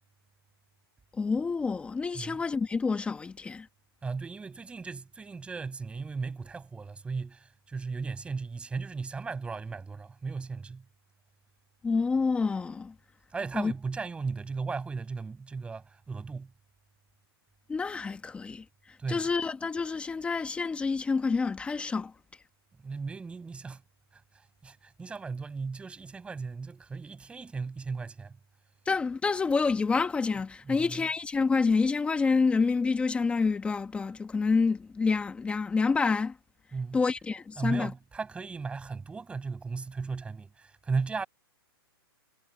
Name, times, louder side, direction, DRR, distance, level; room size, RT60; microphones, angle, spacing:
voice 1, 1.2-3.7 11.8-12.9 13.5-13.7 17.7-18.6 19.1-22.1 28.8-36.3 36.9-37.9, left 4 dB, 10° left, 1.6 m, -28 dB
voice 2, 4.0-10.8 13.3-16.5 19.0-19.3 22.8-23.8 24.1-24.2 24.6-28.4 30.6-31.1 36.7-37.0 37.6-41.3, right 4 dB, 10° right, 5.8 m, -36 dB
hypercardioid pair, 155°, 13 cm